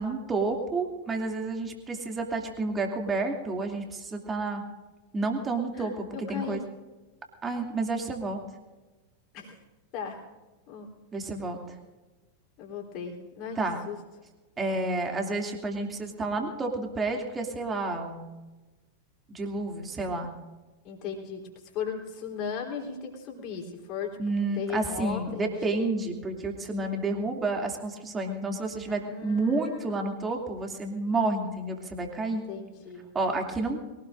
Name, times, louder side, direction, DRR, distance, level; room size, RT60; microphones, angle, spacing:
voice 1, 0.0-4.6 5.1-6.6 7.4-8.4 11.1-11.7 13.6-13.8 14.6-18.3 19.3-20.3 24.2-32.4 33.1-33.8, right 3 dB, 20° right, 2 dB, 2.6 m, -30 dB
voice 2, 5.7-6.6 9.3-9.6 9.9-10.2 10.7-10.9 12.6-13.6 13.9-14.0 20.8-21.4 21.7-25.9 28.9-30.0 32.3-33.1, left 6 dB, 40° left, 1 dB, 3.7 m, -37 dB
23.5 x 18.0 x 2.6 m, 1.2 s
figure-of-eight pair, 90°, 0 cm